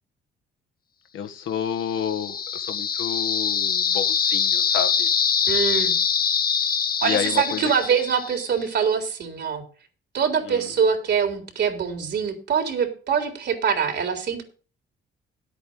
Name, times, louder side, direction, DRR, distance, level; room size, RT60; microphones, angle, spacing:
voice 1, 1.1-5.1 7.0-7.7 10.5-10.7, left 8 dB, 75° left, 7 dB, 1.7 m, -30 dB
sound 1, 1.7-8.6, left 7 dB, 50° left, 1.3 m, -24 dB
voice 2, 5.5-5.9 7.0-9.6 10.1-14.4, right 6 dB, 60° right, 6 dB, 3.8 m, -24 dB
11.0 x 8.4 x 5.4 m, 0.37 s
cardioid pair, 90°, 20 cm